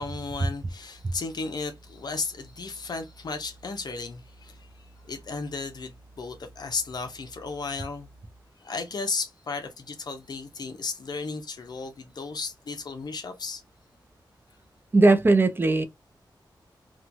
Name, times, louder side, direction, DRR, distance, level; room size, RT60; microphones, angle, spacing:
voice 1, 0.0-4.7 5.1-8.1 8.6-13.6, left 4 dB, 55° left, 0.6 m, -34 dB
voice 2, 14.9-15.8, right 2 dB, 25° right, 0.5 m, -18 dB
2.9 x 2.2 x 2.5 m
wide cardioid pair, 115°, 8 cm